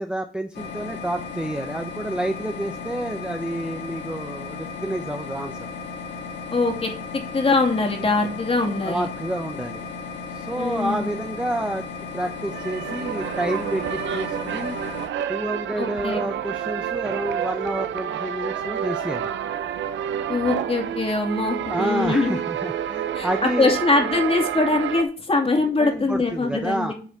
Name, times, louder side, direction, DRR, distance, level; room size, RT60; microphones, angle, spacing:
voice 1, 0.0-5.6 8.8-9.9 10.3-11.8 12.1-14.8 15.3-19.3 21.7-23.7 25.8-26.9, right 1 dB, 5° right, 5 dB, 0.7 m, -29 dB
sound 1, 0.5-15.1, left 4 dB, 60° left, 2.3 m, -35 dB
voice 2, 6.5-6.9 7.3-9.1 10.6-11.1 15.8-16.2 20.3-22.4 23.1-23.3 23.6-26.9, left 3 dB, 30° left, 2 dB, 2.4 m, -22 dB
sound 2, 12.2-25.0, right 10 dB, 70° right, 0.6 m, -29 dB
8.1 x 4.2 x 6.0 m, 0.42 s
cardioid pair, 90°, 20 cm